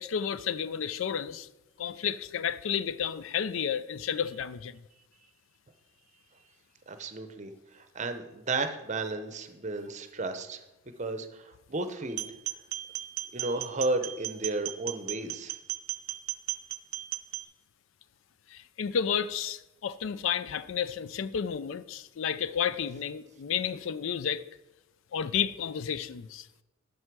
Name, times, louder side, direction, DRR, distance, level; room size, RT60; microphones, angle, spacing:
voice 1, 0.0-1.5 1.8-4.8 18.5-24.4 25.1-26.5, left 8 dB, 70° left, 0.4 m, -31 dB
voice 2, 6.9-10.6 11.0-12.3 13.3-15.6, right 2 dB, 35° right, 0.7 m, -33 dB
sound 1, 12.1-17.4, right 13 dB, 90° right, 0.5 m, -36 dB
7.9 x 5.5 x 6.0 m
head